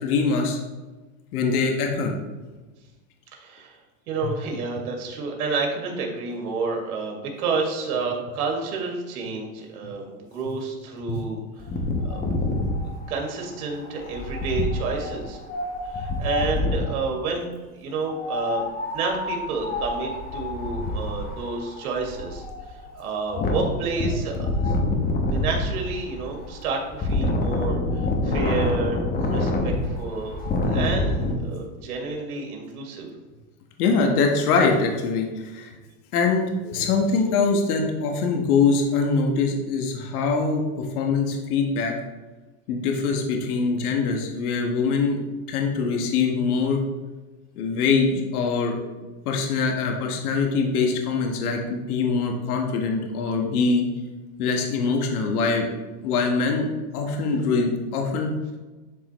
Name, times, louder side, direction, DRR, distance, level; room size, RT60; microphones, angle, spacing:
voice 1, 0.0-0.6 1.3-2.1 11.1-11.2 33.8-35.7 36.1-41.9 42.7-45.2 45.5-46.8 47.6-48.8 49.2-53.8 54.4-55.7 56.0-56.7 56.9-58.3, left 4 dB, 80° left, 2 dB, 1.3 m, -23 dB
voice 2, 3.3-3.8 4.1-11.4 12.0-12.2 13.1-15.4 15.8-18.6 18.9-22.4 22.7-24.8 25.3-30.4 30.7-33.1, right 4 dB, 80° right, 1 dB, 2.0 m, -30 dB
Wind, 11.6-17.0 18.1-31.3, left 2 dB, 20° left, 1.0 m, -27 dB
11.0 x 3.7 x 3.0 m, 1.2 s
supercardioid pair, 125°, 44 cm